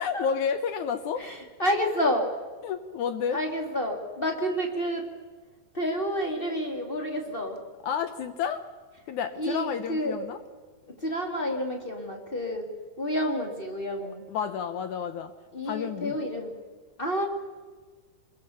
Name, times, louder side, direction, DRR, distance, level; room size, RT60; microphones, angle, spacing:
voice 1, 0.0-1.2 2.6-3.4 7.8-8.6 9.1-10.4 14.3-15.3 15.7-16.2, left 7 dB, 70° left, 10 dB, 1.9 m, -30 dB
voice 2, 1.2-2.3 3.3-5.1 5.7-7.6 9.3-10.2 10.9-12.7 13.0-14.2 15.5-16.5 17.0-17.3, equal, 20° left, 3 dB, 1.7 m, -29 dB
23.0 x 21.5 x 6.9 m, 1.4 s
omnidirectional pair, 4.3 m